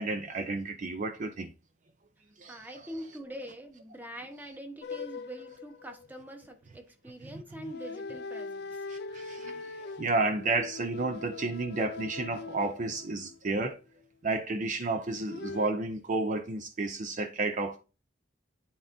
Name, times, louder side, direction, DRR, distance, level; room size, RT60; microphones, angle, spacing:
voice 1, 0.0-1.5 2.4-2.6 8.9-9.7 10.0-13.8 14.2-17.8, right 3 dB, 45° right, 0.5 m, -31 dB
voice 2, 2.5-8.8, right 1 dB, 10° right, 1.0 m, -44 dB
sound 1, 4.8-6.5 7.5-13.6 15.0-15.7, left 4 dB, 60° left, 0.4 m, -42 dB
10.0 x 3.6 x 2.6 m
head